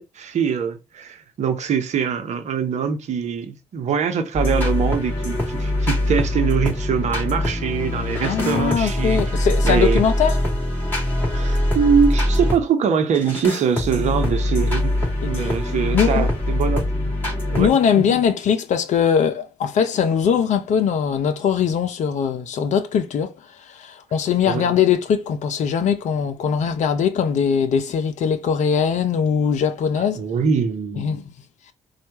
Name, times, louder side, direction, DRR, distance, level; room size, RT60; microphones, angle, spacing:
voice 1, 0.0-10.0 11.3-17.1 17.5-18.2 24.4-24.7 30.0-31.2, right 6 dB, 60° right, 0.9 m, -23 dB
sound 1, 4.3-12.6 13.1-17.7, left 1 dB, 15° left, 2.6 m, -22 dB
voice 2, 8.2-10.4 15.2-15.5 15.9-16.3 17.6-23.3 23.7-30.2 31.0-31.2, left 7 dB, 60° left, 0.7 m, -21 dB
4.4 x 2.5 x 2.9 m
hypercardioid pair, 40°, 14 cm